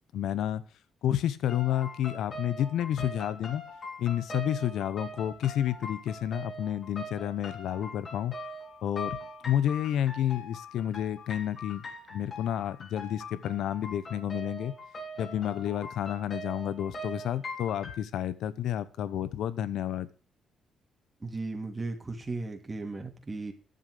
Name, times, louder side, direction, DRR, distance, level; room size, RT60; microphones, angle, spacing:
voice 1, 0.1-0.6 1.0-3.6 4.0-8.4 8.8-14.7 15.2-20.1, left 11 dB, 80° left, 16 dB, 0.9 m, -30 dB
sound 1, 1.5-18.0, left 1 dB, 40° left, 3.4 m, -42 dB
voice 2, 21.2-23.5, right 3 dB, 20° right, 3 dB, 2.6 m, -36 dB
10.5 x 7.4 x 6.8 m, 0.37 s
cardioid pair, 90°, 0 cm